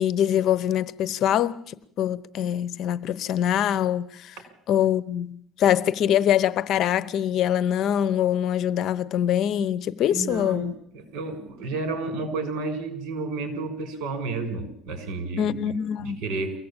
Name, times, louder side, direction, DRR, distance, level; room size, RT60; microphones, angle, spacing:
voice 1, 0.0-4.3 4.7-10.7 15.4-16.2, left 10 dB, 55° left, 0.9 m, -24 dB
voice 2, 10.1-16.6, right 3 dB, 65° right, 6.7 m, -31 dB
23.0 x 17.0 x 9.0 m
cardioid pair, 135°, 0 cm